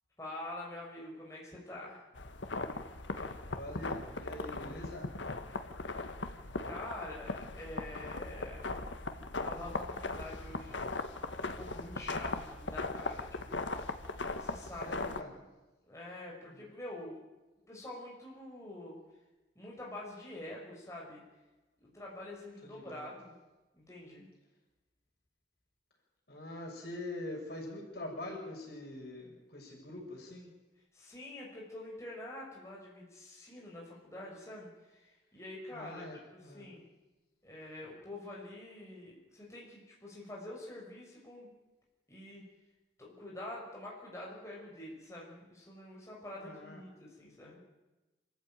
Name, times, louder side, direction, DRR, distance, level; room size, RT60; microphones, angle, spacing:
voice 1, 0.2-2.1 6.6-8.7 9.4-10.8 11.4-13.9 14.4-15.0 15.9-17.2 17.7-19.0 19.6-21.2 21.8-23.3 23.7-24.3 30.9-36.0 36.3-36.8 37.4-41.5 42.1-42.4 43.0-47.6, left 1 dB, 15° left, -3 dB, 5.6 m, -46 dB
sound 1, 2.2-15.2, left 3 dB, 80° left, 1.6 m, -39 dB
voice 2, 3.5-5.1 12.0-12.5 14.8-15.4 16.5-16.6 22.7-23.1 26.3-30.5 35.7-36.7 46.4-46.8, left 1 dB, 55° left, 0 dB, 6.6 m, -44 dB
28.0 x 14.0 x 9.1 m, 1.1 s
head